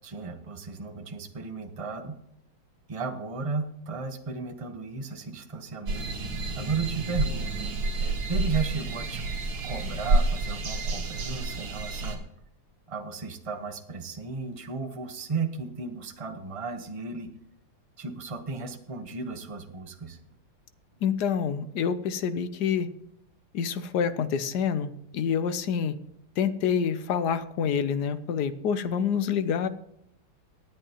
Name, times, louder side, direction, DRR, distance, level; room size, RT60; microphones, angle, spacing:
voice 1, 0.0-2.2 2.9-6.1 6.6-7.7 8.0-9.3 9.6-12.2 12.9-17.3 18.0-20.2, right 4 dB, 25° right, 6 dB, 0.7 m, -34 dB
sound 1, 5.9-12.2, right 2 dB, 80° right, 2.4 m, -29 dB
voice 2, 21.0-22.9 23.5-25.9 26.4-29.7, left 7 dB, 65° left, 12 dB, 1.2 m, -27 dB
18.5 x 10.0 x 3.0 m, 0.76 s
omnidirectional pair, 2.2 m